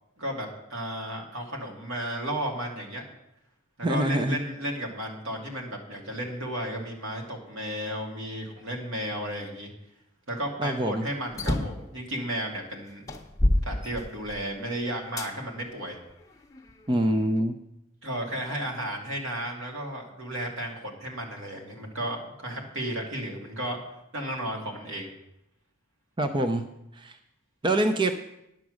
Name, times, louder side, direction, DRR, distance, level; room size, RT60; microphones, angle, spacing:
voice 1, 0.2-3.0 3.8-9.7 10.3-13.0 13.6-16.0 18.0-23.8 24.1-25.1, right 1 dB, 80° right, 0 dB, 2.4 m, -33 dB
voice 2, 3.8-4.4 10.6-11.0 16.9-17.5 26.2-26.6 27.0-27.2 27.6-28.1, right 1 dB, 25° right, 7 dB, 0.5 m, -25 dB
sound 1, 11.3-11.9 12.5-12.6 13.1-14.5 15.2-15.3 16.0-17.1, left 1 dB, 15° left, 0.8 m, -27 dB
10.5 x 7.1 x 6.3 m, 0.84 s
head